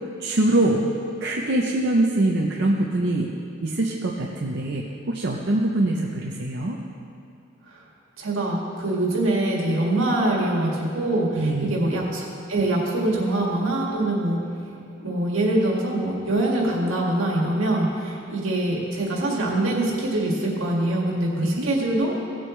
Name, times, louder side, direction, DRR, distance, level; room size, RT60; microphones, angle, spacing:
voice 1, 0.2-0.8 1.2-3.3 3.6-6.8 11.4-11.7 21.4-21.7, right 2 dB, 55° right, -1 dB, 0.7 m, -23 dB
voice 2, 8.2-14.4 15.0-22.1, right 1 dB, 80° right, -2 dB, 2.0 m, -24 dB
17.0 x 7.8 x 3.2 m, 2.5 s
head